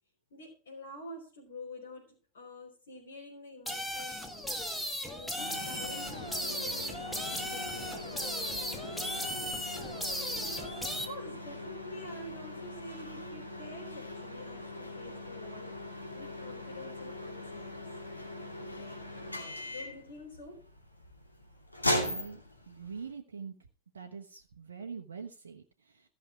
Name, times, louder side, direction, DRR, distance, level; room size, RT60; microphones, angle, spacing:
voice 1, 0.3-2.1 2.3-9.7 10.1-17.8 18.7-20.6, left 2 dB, 60° left, -3 dB, 4.1 m, -48 dB
sound 1, 3.7-11.1, equal, 5° left, 1.8 m, -36 dB
sound 2, 5.4-23.1, left 1 dB, 85° left, 2.5 m, -40 dB
voice 2, 22.0-22.4 22.7-23.5 23.9-26.1, right 6 dB, 70° right, 4 dB, 1.0 m, -44 dB
14.0 x 6.4 x 5.8 m, 0.37 s
figure-of-eight pair, 90°, 0 cm